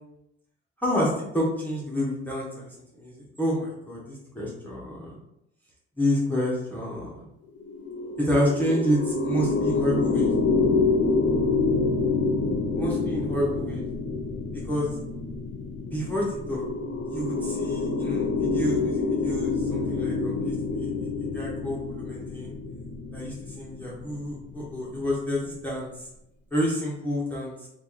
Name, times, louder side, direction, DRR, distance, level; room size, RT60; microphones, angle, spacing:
voice 1, 0.8-5.2 6.0-7.2 8.2-10.3 12.8-13.9 14.6-14.9 15.9-16.6 17.1-20.9 21.3-22.5 23.1-25.9 26.5-27.7, equal, 5° left, -6 dB, 0.9 m, -29 dB
sound 1, 7.6-25.0, left 3 dB, 55° left, 0.7 m, -27 dB
2.9 x 2.4 x 3.7 m, 0.84 s
cardioid pair, 90°, 30 cm